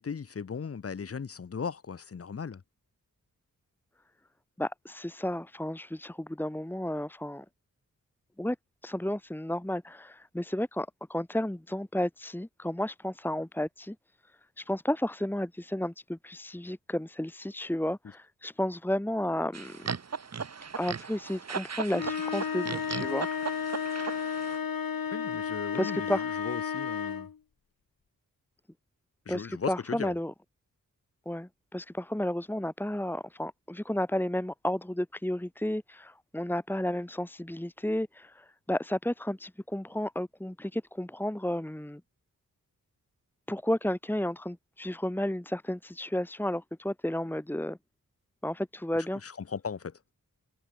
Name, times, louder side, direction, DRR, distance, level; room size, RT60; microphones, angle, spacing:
voice 1, 0.0-2.6 25.1-27.3 29.3-30.1 49.2-49.9, left 6 dB, 45° left, 1.0 m, -37 dB
voice 2, 4.6-7.5 8.4-8.6 8.8-14.0 14.6-19.8 20.8-23.3 25.7-26.2 29.3-30.3 31.3-42.0 43.5-47.8 48.4-49.2, left 1 dB, 5° left, 2.0 m, -32 dB
sound 1, 19.5-24.6, right 6 dB, 50° right, 1.6 m, -37 dB
sound 2, 21.9-27.4, left 7 dB, 85° left, 3.8 m, -33 dB
wide cardioid pair, 115°, 34 cm